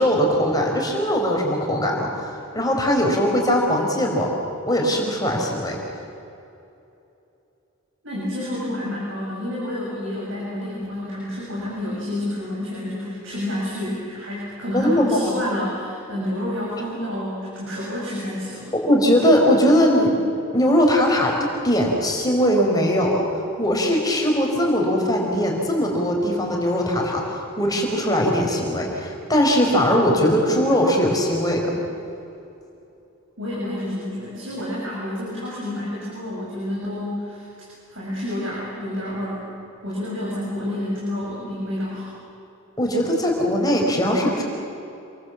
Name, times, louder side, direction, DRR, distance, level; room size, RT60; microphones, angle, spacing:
voice 1, 0.0-4.3 4.7-5.8 14.7-15.3 18.8-20.1 20.5-21.4 21.6-23.2 23.6-31.7 42.8-44.4, equal, 20° left, 0 dB, 4.4 m, -20 dB
voice 2, 8.0-18.7 33.4-37.5 37.9-39.4 39.8-42.1, left 1 dB, 65° right, -5 dB, 7.1 m, -29 dB
28.0 x 23.0 x 7.4 m, 2.8 s
head